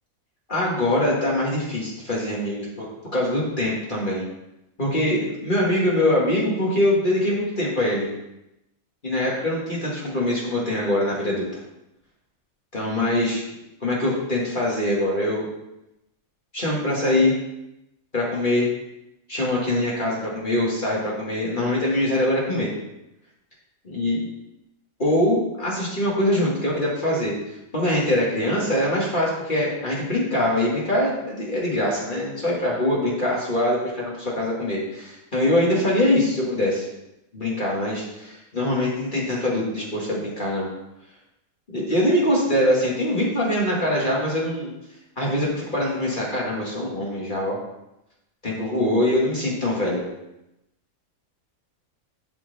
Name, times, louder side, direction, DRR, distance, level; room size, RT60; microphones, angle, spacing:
voice 1, 0.5-4.2 4.8-8.1 9.0-11.5 12.7-13.4 13.8-15.5 16.5-17.4 18.1-18.7 19.3-22.7 23.8-24.2 25.0-27.3 27.7-36.9 37.3-40.7 41.7-44.7 45.2-47.6 48.4-50.1, left 1 dB, 35° left, -5 dB, 2.0 m, -23 dB
12.5 x 4.5 x 4.1 m, 0.89 s
omnidirectional pair, 1.4 m